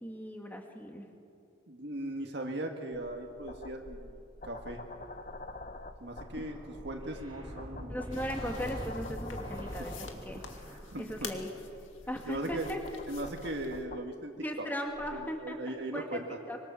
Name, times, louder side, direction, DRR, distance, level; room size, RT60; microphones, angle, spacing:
voice 1, 0.0-1.1 7.9-9.9 10.2-10.4 11.0-11.5 12.1-12.8 14.4-16.2 16.5-16.6, equal, 10° left, 2 dB, 2.4 m, -38 dB
voice 2, 1.7-4.2 4.4-4.8 6.0-6.6 6.8-8.0 9.6-9.7 10.9-11.3 12.3-12.7 13.1-14.3 14.6-14.7 15.4-16.4, right 1 dB, 60° right, 2 dB, 2.0 m, -38 dB
sound 1, 2.9-14.0 14.9-15.3, left 2 dB, 40° left, 1.0 m, -47 dB
sound 2, 6.0-11.4, equal, 20° right, 4.6 m, -44 dB
sound 3, 8.1-13.9, left 6 dB, 85° left, 2.3 m, -50 dB
25.0 x 25.0 x 7.1 m, 2.6 s
head